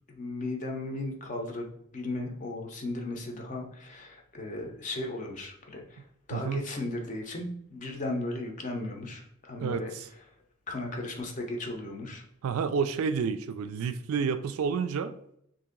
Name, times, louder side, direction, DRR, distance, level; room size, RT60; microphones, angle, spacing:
voice 1, 0.1-6.0 6.3-9.9 10.7-12.2, left 2 dB, 35° left, 1 dB, 0.6 m, -36 dB
voice 2, 6.3-6.6 9.6-10.1 12.4-15.1, right 6 dB, 80° right, 10 dB, 0.3 m, -30 dB
2.8 x 2.6 x 3.7 m, 0.71 s
head